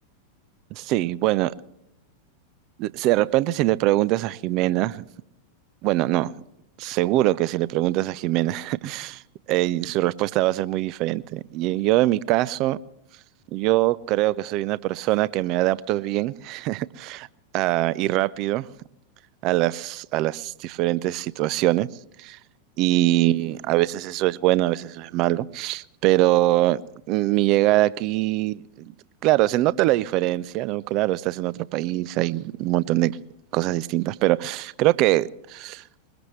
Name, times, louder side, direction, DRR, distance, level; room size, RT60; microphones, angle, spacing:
voice 1, 0.7-1.5 2.8-5.0 5.8-6.3 6.8-9.2 9.5-12.8 13.5-17.3 17.5-18.7 19.4-21.9 22.2-22.4 22.8-26.8 27.1-28.9 29.2-33.1 33.5-35.8, right 16 dB, 40° right, 0.5 m, -23 dB
22.0 x 20.5 x 3.2 m
figure-of-eight pair, 90°, 0 cm